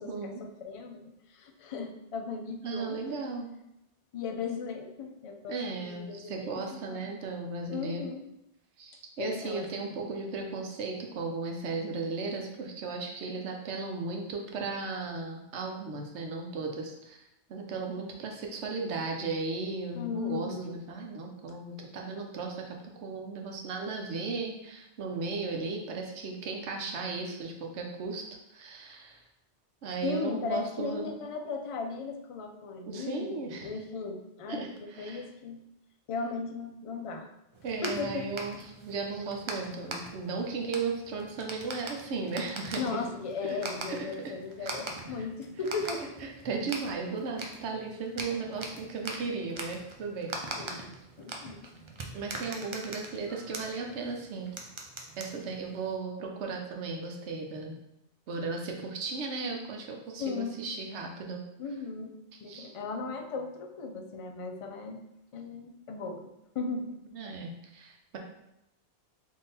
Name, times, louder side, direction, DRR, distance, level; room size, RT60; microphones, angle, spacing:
voice 1, 0.0-0.4 2.6-3.5 5.5-8.0 8.8-17.2 17.5-29.2 29.8-31.1 32.9-33.7 34.5-35.3 37.6-42.8 43.4-43.6 43.8-44.3 44.6-44.8 45.1-45.3 46.2-50.9 52.1-54.5 55.2-57.8 58.3-61.4 62.5-62.7 67.1-68.2, right 4 dB, 75° right, 1 dB, 1.0 m, -36 dB
voice 2, 0.6-3.0 4.1-5.6 5.8-7.1 7.7-8.2 9.2-10.0 19.9-20.7 30.0-35.6 36.1-37.3 37.8-38.3 42.8-46.0 50.5-52.3 60.2-60.7 61.6-62.1 62.4-65.0 65.3-66.9 67.2-67.3, left 4 dB, 60° left, 4 dB, 0.3 m, -37 dB
sound 1, 37.5-56.0, right 2 dB, 50° right, 0.3 m, -42 dB
3.7 x 2.8 x 4.0 m, 0.85 s
omnidirectional pair, 1.2 m